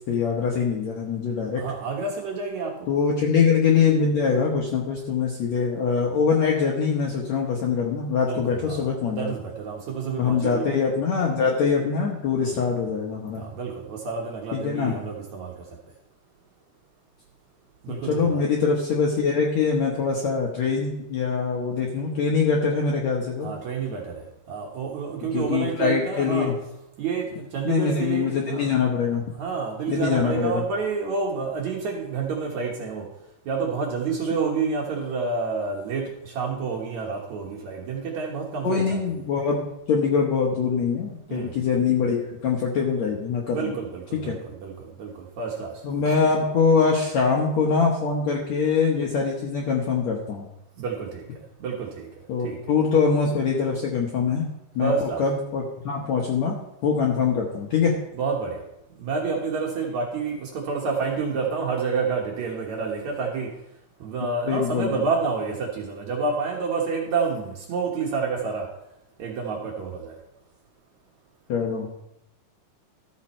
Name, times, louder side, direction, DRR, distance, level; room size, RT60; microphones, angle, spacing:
voice 1, 0.0-1.6 2.9-9.3 10.2-13.4 14.5-15.0 17.9-23.5 25.3-26.6 27.6-29.2 29.9-30.6 38.6-43.7 44.1-44.4 45.8-50.5 52.3-54.4 54.8-56.5 56.8-58.0 64.5-65.0 71.5-71.9, left 5 dB, 65° left, -1 dB, 1.8 m, -23 dB
voice 2, 1.6-2.8 8.2-10.8 12.4-12.5 13.3-15.5 17.8-18.4 23.4-26.5 27.0-28.7 29.4-33.1 33.5-39.0 41.3-41.5 43.5-44.7 45.0-45.1 45.4-45.7 46.1-46.2 50.8-51.2 51.6-52.1 52.4-52.6 54.8-55.2 58.1-58.6 59.0-63.5 64.0-68.7 69.2-70.2, right 5 dB, 60° right, -1 dB, 2.2 m, -29 dB
13.5 x 7.4 x 4.4 m, 0.84 s
omnidirectional pair, 4.5 m